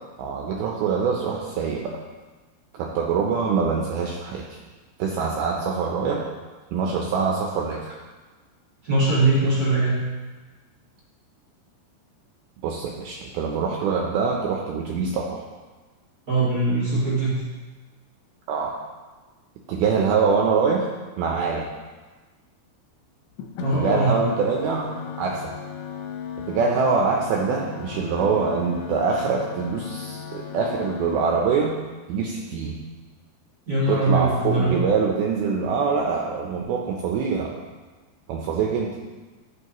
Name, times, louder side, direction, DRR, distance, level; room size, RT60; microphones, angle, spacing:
voice 1, 0.2-1.9 2.8-4.6 5.0-6.2 6.7-8.0 12.6-15.4 18.5-18.7 19.7-20.8 21.2-21.7 23.7-25.5 26.5-31.7 32.1-32.8 33.9-37.5 38.3-38.9, right 5 dB, 80° right, 0 dB, 2.3 m, -24 dB
voice 2, 8.8-10.0 16.3-17.3 23.6-24.1 33.7-34.8, right 2 dB, 60° right, -9 dB, 0.9 m, -21 dB
sound 1, 23.4-31.4, left 7 dB, 75° left, 2.6 m, -35 dB
11.0 x 7.5 x 3.0 m, 1.3 s
omnidirectional pair, 5.1 m